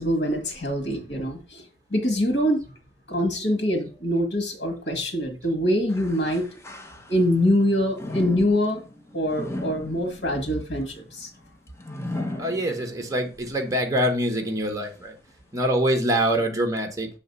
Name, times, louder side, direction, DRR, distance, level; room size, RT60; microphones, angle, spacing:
voice 1, 0.0-1.6 1.9-2.6 3.1-6.5 7.1-8.8 9.1-11.3, equal, 75° left, 4 dB, 1.8 m, -24 dB
sound 1, 5.9-7.5 7.9-13.2 13.7-13.8 14.6-14.7, left 1 dB, 15° left, 0.8 m, -37 dB
voice 2, 12.4-15.2 15.5-17.1, right 1 dB, 20° right, 4 dB, 1.2 m, -24 dB
6.7 x 3.2 x 5.3 m, 0.34 s
head